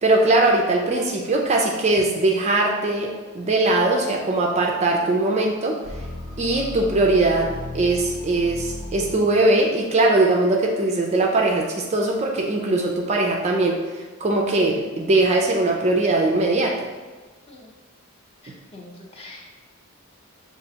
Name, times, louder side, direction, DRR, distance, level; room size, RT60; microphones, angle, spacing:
voice 1, 0.0-5.8 6.4-16.7, right 2 dB, 30° right, 0 dB, 0.3 m, -20 dB
sound 1, 5.8-9.6, left 1 dB, 60° left, 0.7 m, -35 dB
voice 2, 18.4-19.5, left 2 dB, 25° left, -2 dB, 0.6 m, -44 dB
6.4 x 2.4 x 2.8 m, 1.3 s
head